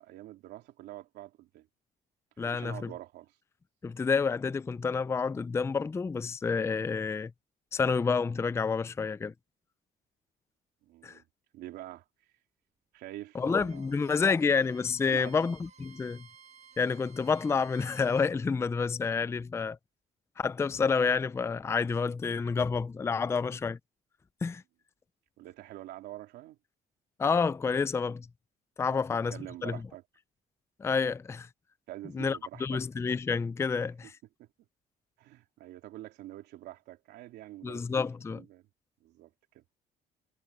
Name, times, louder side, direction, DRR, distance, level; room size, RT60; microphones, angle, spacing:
voice 1, 0.0-1.7 2.4-3.3 10.8-11.2 11.5-12.0 12.9-14.2 15.1-15.4 25.4-26.6 28.8-29.0 29.3-30.0 31.9-32.8 34.4-34.5 35.2-37.9 38.3-38.6 39.0-39.3 39.5-39.6, right 15 dB, 80° right, 3.4 m, -46 dB
voice 2, 2.4-2.9 3.8-7.3 7.7-9.3 11.0-11.2 13.3-16.3 16.8-19.8 20.4-23.8 24.4-24.6 27.2-28.3 28.8-29.3 29.6-29.8 30.8-31.5 32.1-34.2 37.6-38.4, left 5 dB, 15° left, 0.4 m, -29 dB
Bowed string instrument, 13.3-18.3, right 7 dB, 40° right, 1.6 m, -56 dB
cardioid pair, 110°, 17 cm